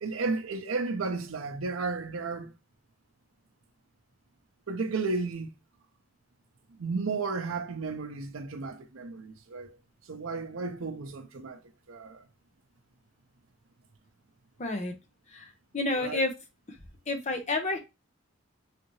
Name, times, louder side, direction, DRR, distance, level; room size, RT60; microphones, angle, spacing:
voice 1, 0.0-2.5 4.7-5.5 6.8-9.8 10.1-11.6 11.9-12.3 16.0-16.2, right 4 dB, 70° right, 0.6 m, -33 dB
voice 2, 14.6-14.9 15.3-15.5 15.7-16.3 17.1-17.8, left 2 dB, 35° left, 0.7 m, -29 dB
3.3 x 2.8 x 3.0 m
head